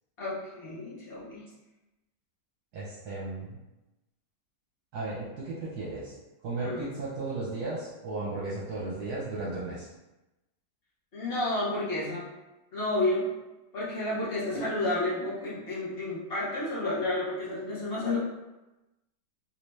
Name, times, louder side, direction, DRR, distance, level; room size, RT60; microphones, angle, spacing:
voice 1, 0.2-1.5 6.6-6.9 11.1-12.3 12.7-13.3 13.7-18.2, left 2 dB, 40° left, -8 dB, 1.1 m, -31 dB
voice 2, 2.7-3.6 4.9-6.1 6.4-9.9, right 2 dB, 65° right, -7 dB, 1.3 m, -35 dB
3.4 x 2.8 x 3.2 m, 1.0 s
omnidirectional pair, 1.9 m